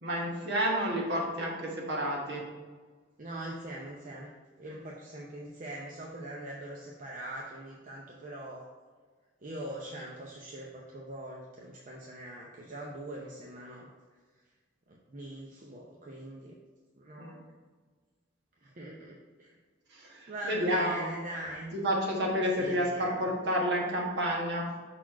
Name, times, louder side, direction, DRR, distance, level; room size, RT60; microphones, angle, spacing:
voice 1, 0.0-2.4 4.7-4.8 17.2-17.4 19.9-21.1 21.7-24.7, equal, 60° right, -1 dB, 1.4 m, -30 dB
voice 2, 3.2-4.3 4.6-8.7 9.4-13.9 14.9-16.5 17.0-17.4 18.6-19.5 20.3-21.7 22.6-23.3, right 1 dB, 40° right, -2 dB, 0.7 m, -42 dB
6.0 x 4.3 x 4.7 m, 1.4 s
head